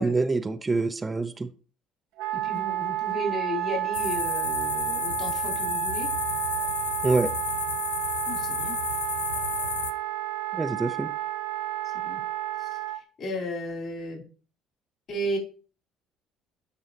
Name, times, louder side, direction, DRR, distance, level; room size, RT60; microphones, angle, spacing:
voice 1, 0.0-1.5 7.0-7.3 10.5-11.1, right 3 dB, 25° right, 9 dB, 0.6 m, -25 dB
Wind instrument woodwind instrument, 2.2-13.0, right 14 dB, 75° right, 1.0 m, -31 dB
voice 2, 2.3-6.1 8.3-8.8 10.6-10.8 11.8-12.2 12.6-14.2 15.1-15.4, equal, 55° left, -2 dB, 3.9 m, -34 dB
sound 1, 3.9-9.9, left 8 dB, 90° left, 0.4 m, -32 dB
11.0 x 4.6 x 3.0 m, 0.39 s
hypercardioid pair, 60°, 0 cm